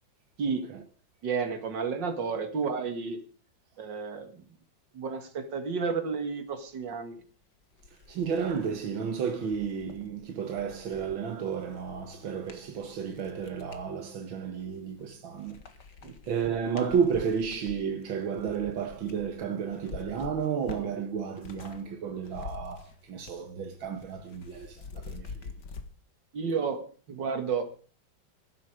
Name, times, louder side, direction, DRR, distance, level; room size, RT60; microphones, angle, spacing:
voice 1, 1.2-3.2 3.8-4.4 4.9-7.2 16.0-16.1 26.3-26.8 27.1-27.7, right 5 dB, 65° right, 2.6 m, -31 dB
sound 1, 7.2-7.3 7.7-13.9 14.5-15.1 15.4-21.8 22.1-23.5 23.7-25.9, left 5 dB, 60° left, 2.2 m, -47 dB
voice 2, 8.1-15.6 16.2-25.5, right 6 dB, 85° right, 2.1 m, -32 dB
16.0 x 12.5 x 5.0 m
omnidirectional pair, 2.1 m